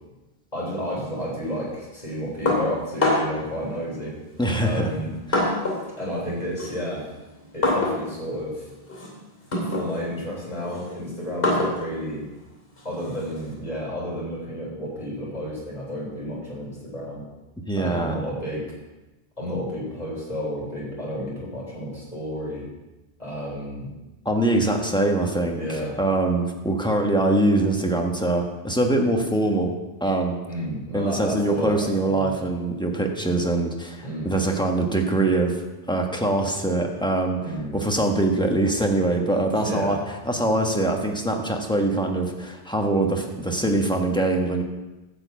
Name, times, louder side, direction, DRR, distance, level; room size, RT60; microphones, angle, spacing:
voice 1, 0.5-4.2 4.6-5.1 6.0-7.0 7.5-8.6 9.7-12.3 12.8-17.2 17.8-18.7 19.4-22.7 23.2-23.9 25.5-26.0 30.5-32.3 34.0-34.4 37.4-37.8 39.5-40.0, equal, 40° left, -5 dB, 3.9 m, -31 dB
sound 1, 2.5-3.5 4.4-5.9 6.2-13.5, left 2 dB, 60° left, 3.0 m, -27 dB
voice 2, 4.4-4.9 5.3-5.4 17.7-18.2 24.2-29.7 30.0-30.4 30.9-35.6 35.9-40.0 40.2-44.6, right 2 dB, 5° left, 2 dB, 1.1 m, -23 dB
11.5 x 4.6 x 8.2 m, 1.1 s
omnidirectional pair, 1.1 m